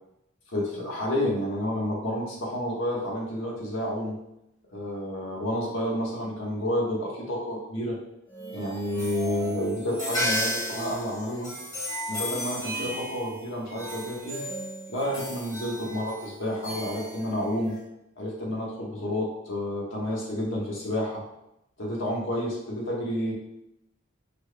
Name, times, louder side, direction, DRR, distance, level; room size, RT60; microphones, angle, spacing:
voice 1, 0.5-4.2 4.7-8.0 8.5-11.5 12.1-14.4 14.9-17.8 18.2-21.2 21.8-23.3, left 1 dB, 70° left, -4 dB, 1.4 m, -30 dB
sound 1, 8.3-17.8, equal, 20° left, 1.4 m, -34 dB
5.0 x 4.4 x 2.3 m, 0.83 s
head